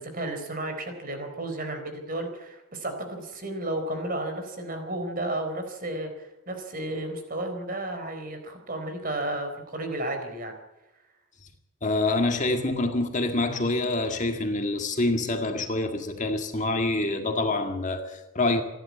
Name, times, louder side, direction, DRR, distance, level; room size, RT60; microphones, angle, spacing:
voice 1, 0.0-10.5, right 1 dB, 40° right, 6 dB, 4.2 m, -33 dB
voice 2, 11.8-18.6, left 2 dB, 35° left, 5 dB, 1.9 m, -26 dB
27.5 x 11.5 x 8.5 m, 1.0 s
head